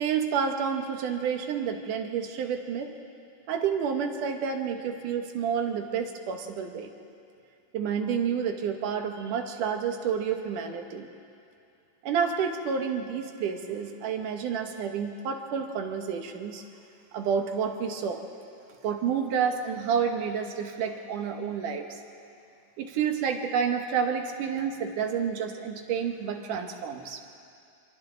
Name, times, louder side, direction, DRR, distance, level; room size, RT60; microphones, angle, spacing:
voice 1, 0.0-2.9 3.5-6.9 7.7-11.1 12.0-16.6 17.1-18.2 18.8-22.0 22.8-27.2, right 7 dB, 80° right, 4 dB, 2.8 m, -29 dB
27.0 x 25.0 x 3.9 m, 2.5 s
omnidirectional pair, 3.6 m